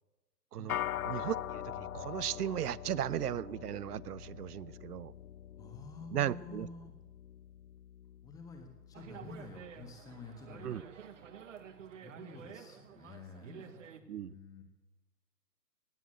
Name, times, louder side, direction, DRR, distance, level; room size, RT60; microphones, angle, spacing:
voice 1, 0.5-1.0 5.5-6.9 8.2-10.9 12.0-14.6, left 4 dB, 5° left, 1.4 m, -50 dB
sound 1, 0.7-10.2, left 11 dB, 65° left, 0.5 m, -43 dB
voice 2, 1.0-5.1 6.1-6.7 10.6-10.8 14.1-14.3, right 11 dB, 70° right, 0.6 m, -36 dB
sound 2, 8.9-14.0, right 8 dB, 50° right, 1.4 m, -50 dB
18.0 x 9.2 x 7.9 m
hypercardioid pair, 145°, 48 cm